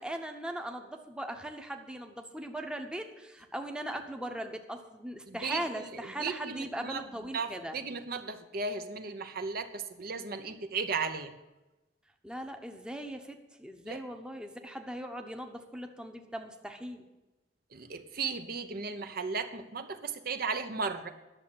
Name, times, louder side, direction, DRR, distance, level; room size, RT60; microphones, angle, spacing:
voice 1, 0.0-7.8 12.2-17.0, right 1 dB, 5° right, 4 dB, 0.9 m, -39 dB
voice 2, 5.3-7.0 7.3-11.3 13.9-14.0 17.7-21.1, right 4 dB, 55° right, 8 dB, 0.8 m, -36 dB
11.0 x 7.0 x 8.6 m, 1.0 s
head